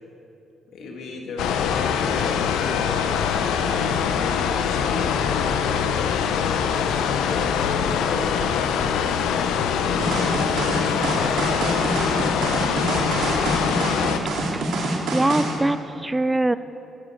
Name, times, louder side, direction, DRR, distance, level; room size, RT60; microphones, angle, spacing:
voice 1, 0.7-5.5 6.2-8.7 9.7-11.7, left 2 dB, 75° left, 0 dB, 2.1 m, -35 dB
sound 1, 1.4-14.2, left 7 dB, 90° left, 0.6 m, -23 dB
sound 2, 10.0-15.6, right 2 dB, 80° right, 2.1 m, -26 dB
voice 2, 14.3-16.5, right 2 dB, 15° right, 14 dB, 0.3 m, -24 dB
14.0 x 10.5 x 4.6 m, 2.9 s
cardioid pair, 90°, 0 cm